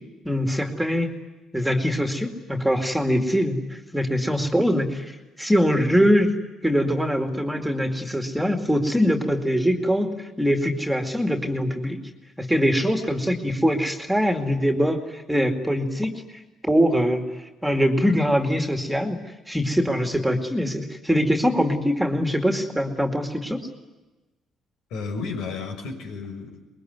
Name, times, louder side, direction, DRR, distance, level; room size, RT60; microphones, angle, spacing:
voice 1, 0.2-1.1 1.5-6.4 6.6-12.0 12.4-16.1 16.6-19.2 19.5-23.6, equal, ahead, 5 dB, 2.4 m, -23 dB
voice 2, 24.9-26.6, left 4 dB, 80° left, 4 dB, 6.2 m, -32 dB
25.0 x 22.0 x 9.6 m, 1.1 s
cardioid pair, 150°, 0 cm